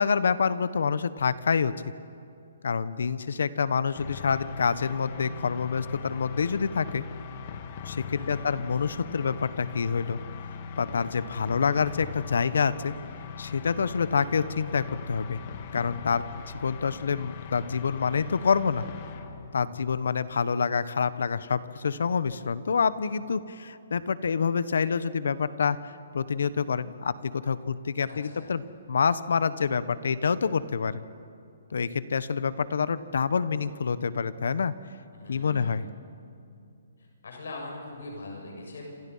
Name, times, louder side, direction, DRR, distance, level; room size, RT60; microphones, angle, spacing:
voice 1, 0.0-1.7 2.6-7.0 7.8-10.2 10.8-12.9 13.4-15.4 15.7-18.9 19.5-28.6 28.9-31.0 31.7-34.7 35.3-35.8, left 6 dB, 75° left, 15 dB, 1.1 m, -27 dB
sound 1, 3.9-19.6, left 6 dB, 30° left, 1.6 m, -40 dB
voice 2, 8.0-8.5 28.1-28.6 35.1-35.8 37.2-38.9, left 2 dB, 90° left, 1 dB, 6.8 m, -41 dB
27.5 x 27.5 x 5.6 m, 2.5 s
hypercardioid pair, 170°, 0 cm